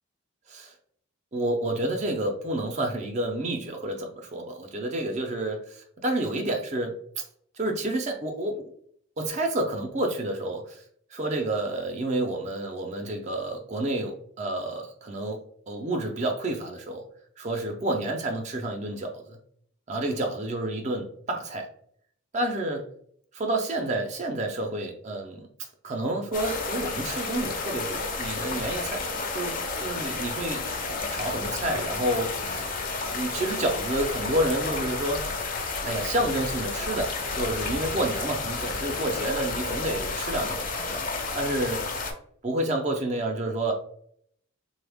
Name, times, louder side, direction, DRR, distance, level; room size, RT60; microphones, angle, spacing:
voice 1, 1.3-7.2 7.6-8.7 9.2-10.8 11.1-15.4 15.7-17.0 17.4-19.4 19.9-21.7 22.3-22.9 23.3-25.5 25.8-29.0 29.3-30.6 31.1-32.7 33.1-35.3 35.8-40.6 40.9-41.0 41.3-41.9 42.4-43.7, right 1 dB, 35° right, 3 dB, 0.4 m, -29 dB
sound 1, 26.3-42.1, left 3 dB, 40° left, 0.5 m, -31 dB
3.3 x 2.1 x 3.4 m, 0.65 s
head